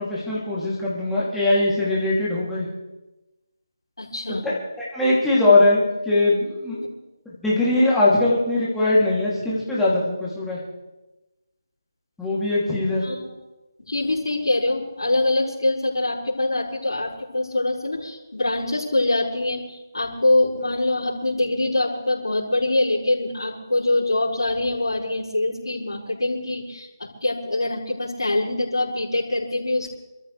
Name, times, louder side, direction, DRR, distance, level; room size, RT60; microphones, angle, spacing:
voice 1, 0.0-2.7 4.3-6.8 7.2-10.6 12.2-13.0, left 2 dB, 5° left, -8 dB, 2.8 m, -21 dB
voice 2, 4.0-4.5 13.0-13.3 13.8-29.9, left 2 dB, 80° left, -7 dB, 5.0 m, -24 dB
27.0 x 14.0 x 3.3 m, 1.0 s
figure-of-eight pair, 165°, 2 cm